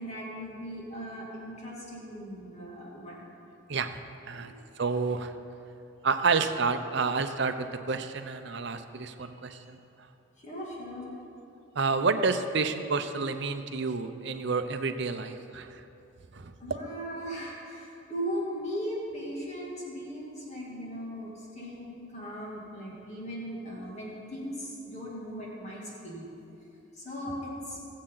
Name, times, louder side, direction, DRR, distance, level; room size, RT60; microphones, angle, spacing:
voice 1, 0.0-3.2 4.3-4.6 9.2-9.6 10.4-11.1 16.6-26.2 26.9-27.8, equal, 35° left, -5 dB, 2.5 m, -38 dB
voice 2, 4.3-5.3 6.0-9.8 11.8-15.8 16.3-16.8, right 4 dB, 55° right, 8 dB, 0.6 m, -29 dB
20.0 x 7.5 x 3.9 m, 2.8 s
head